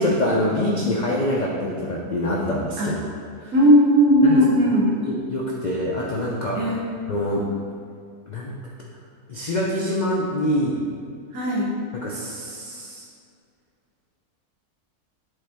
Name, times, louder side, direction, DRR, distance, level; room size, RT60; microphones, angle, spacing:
voice 1, 0.0-3.0 3.4-3.5 4.2-4.4 5.0-6.7 7.1-7.4 8.3-8.6 9.3-10.8 11.9-13.0, left 1 dB, 75° left, -3 dB, 0.4 m, -25 dB
voice 2, 3.5-5.0 6.5-6.9 11.3-11.8, equal, 75° right, -4 dB, 1.3 m, -17 dB
7.8 x 3.8 x 3.4 m, 2.3 s
omnidirectional pair, 1.6 m